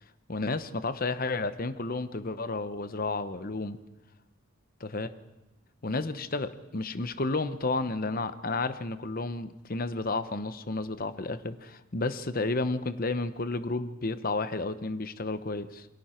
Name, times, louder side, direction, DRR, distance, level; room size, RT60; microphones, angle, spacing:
voice 1, 0.3-3.8 4.8-5.1 5.8-15.9, left 3 dB, 40° left, 11 dB, 0.9 m, -32 dB
28.0 x 22.5 x 4.5 m, 1.0 s
head